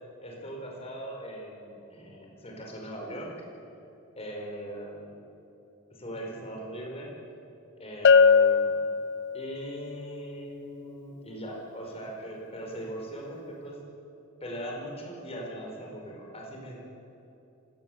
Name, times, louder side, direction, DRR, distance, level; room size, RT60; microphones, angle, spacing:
voice 1, 0.2-3.3 4.2-5.1 5.9-7.1 7.8-8.9 9.3-13.8 14.4-16.8, equal, 30° left, 0 dB, 5.3 m, -40 dB
Bell, 8.0-9.7, left 5 dB, 55° left, 0.5 m, -20 dB
26.0 x 18.0 x 8.1 m, 2.9 s
head